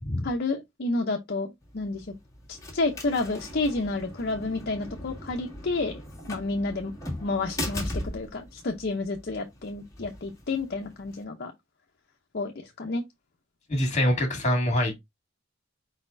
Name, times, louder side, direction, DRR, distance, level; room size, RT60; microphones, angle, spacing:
voice 1, 0.2-2.1 2.5-6.0 6.3-6.9 7.2-11.5 12.3-13.0, left 3 dB, 55° left, 0.7 m, -30 dB
sound 1, 1.6-11.2, left 1 dB, 15° left, 1.8 m, -39 dB
voice 2, 13.7-15.0, equal, 40° left, 2.0 m, -25 dB
4.8 x 4.1 x 2.6 m
head